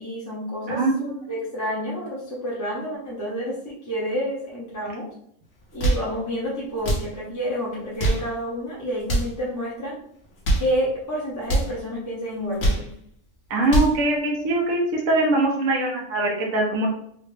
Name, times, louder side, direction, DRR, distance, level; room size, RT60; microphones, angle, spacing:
voice 1, 0.0-5.1 5.7-10.0 10.6-12.9, equal, 15° left, -6 dB, 0.7 m, -29 dB
voice 2, 0.7-1.1 13.5-16.9, right 2 dB, 80° right, -2 dB, 1.2 m, -22 dB
sound 1, 5.6-6.1 6.8-7.1 7.8-8.3 9.0-9.4 10.2-10.7 11.4-11.7 12.4-12.9 13.5-14.0, right 1 dB, 60° left, 1.3 m, -23 dB
3.8 x 2.1 x 3.2 m, 0.67 s
omnidirectional pair, 1.4 m